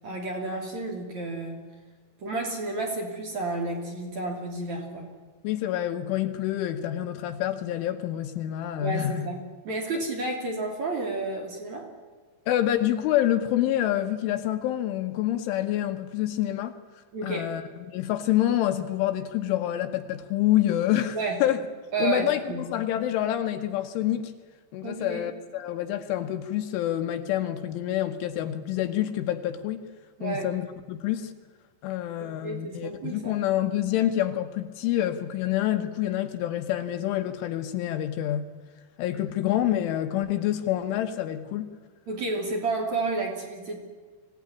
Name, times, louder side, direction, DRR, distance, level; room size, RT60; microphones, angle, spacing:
voice 1, 0.0-1.6 2.2-5.1 8.8-9.4 9.6-11.9 17.1-17.5 21.1-21.4 21.9-22.7 24.8-25.3 30.2-30.5 32.2-33.3 42.1-43.8, right 3 dB, 40° right, 3.5 m, -31 dB
voice 2, 5.4-9.3 12.5-16.8 17.2-21.6 22.0-24.3 24.7-29.8 30.2-31.3 31.8-38.5 39.0-41.7, left 12 dB, 75° left, 3.4 m, -27 dB
25.0 x 17.0 x 9.8 m
omnidirectional pair, 5.9 m